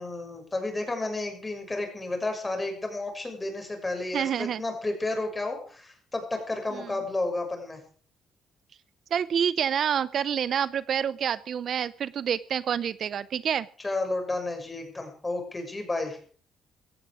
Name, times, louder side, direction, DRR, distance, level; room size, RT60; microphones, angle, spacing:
voice 1, 0.0-7.8 13.8-16.2, left 2 dB, 20° left, 4 dB, 6.6 m, -32 dB
voice 2, 4.1-4.6 6.7-6.9 9.1-13.7, right 8 dB, 60° right, 18 dB, 0.7 m, -27 dB
17.0 x 14.0 x 5.1 m, 0.43 s
cardioid pair, 90°, 0 cm